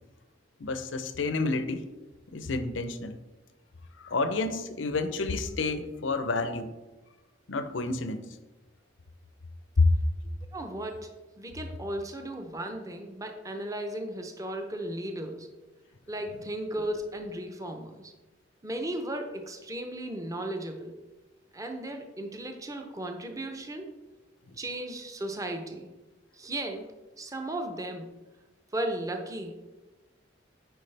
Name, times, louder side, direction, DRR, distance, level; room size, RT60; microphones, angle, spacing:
voice 1, 0.6-1.8 2.3-3.2 4.0-6.7 7.5-8.2 9.8-9.9, left 3 dB, 85° left, 10 dB, 0.7 m, -29 dB
voice 2, 10.5-11.1 11.4-15.5 16.1-18.1 18.6-20.9 21.5-23.9 24.6-25.9 26.3-28.1 28.7-29.7, right 1 dB, 20° right, 5 dB, 0.7 m, -36 dB
9.0 x 4.9 x 3.3 m, 1.1 s
head